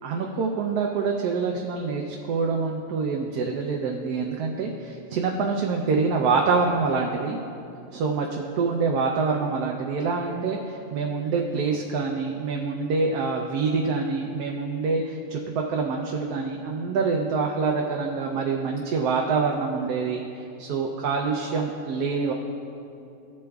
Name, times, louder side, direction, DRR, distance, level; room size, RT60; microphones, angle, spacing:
voice 1, 0.0-7.4 7.9-22.3, right 4 dB, 90° right, 1 dB, 1.2 m, -26 dB
15.5 x 8.4 x 2.3 m, 2.7 s
omnidirectional pair, 1.6 m